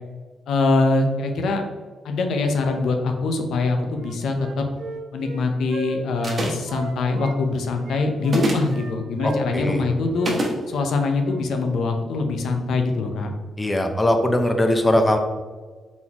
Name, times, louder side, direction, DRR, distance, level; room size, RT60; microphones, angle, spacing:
voice 1, 0.5-1.6 2.0-4.7 5.1-10.3 10.7-13.3, left 3 dB, 80° left, 4 dB, 0.6 m, -23 dB
Wind instrument woodwind instrument, 3.9-7.4 7.8-9.9 10.1-10.3 10.7-10.9 11.2-11.4, right 1 dB, 60° right, 0.7 m, -36 dB
sound 1, 6.2-6.7 8.2-8.7 10.2-10.6, right 1 dB, 40° right, 1.0 m, -24 dB
voice 2, 9.2-9.8 13.6-15.2, left 1 dB, 15° left, 5 dB, 0.5 m, -20 dB
4.0 x 3.8 x 2.9 m, 1.4 s
cardioid pair, 105°, 0 cm